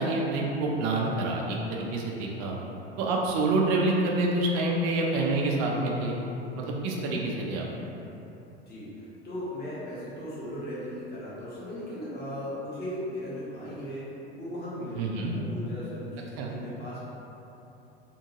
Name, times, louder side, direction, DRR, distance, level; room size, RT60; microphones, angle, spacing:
voice 1, 0.0-2.5 3.0-6.1 6.6-7.7 14.9-15.3 16.4-16.5, right 2 dB, 45° right, -1 dB, 0.6 m, -27 dB
voice 2, 8.7-14.1 14.3-17.0, equal, 30° left, -9 dB, 1.2 m, -37 dB
3.6 x 2.7 x 2.8 m, 3.0 s
figure-of-eight pair, 75°, 33 cm